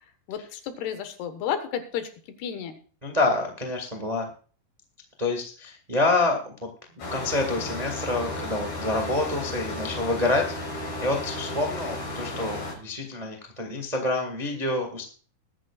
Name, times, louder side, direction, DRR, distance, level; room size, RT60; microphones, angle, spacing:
voice 1, 0.3-2.1 2.4-2.8, left 9 dB, 85° left, 9 dB, 3.4 m, -31 dB
voice 2, 3.0-4.3 5.2-6.7 7.1-10.5 11.0-15.0, left 2 dB, 50° right, 2 dB, 0.4 m, -27 dB
sound 1, 7.0-12.7, left 1 dB, 65° left, 6.3 m, -34 dB
21.5 x 10.0 x 2.4 m, 0.41 s
omnidirectional pair, 4.6 m